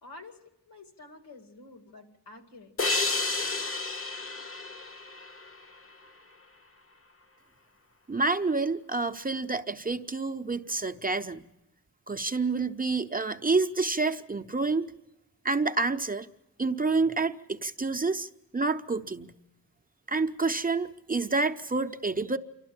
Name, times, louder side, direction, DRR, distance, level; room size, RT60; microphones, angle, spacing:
voice 1, 0.0-2.7, left 2 dB, 85° left, 6 dB, 2.4 m, -49 dB
sound 1, 2.8-6.1, left 3 dB, 35° left, 0.8 m, -31 dB
voice 2, 8.1-11.5 12.1-14.9 15.4-16.3 16.6-19.3 20.1-22.4, right 3 dB, 20° right, 7 dB, 0.7 m, -28 dB
27.5 x 12.5 x 8.8 m, 0.93 s
cardioid pair, 85°, 39 cm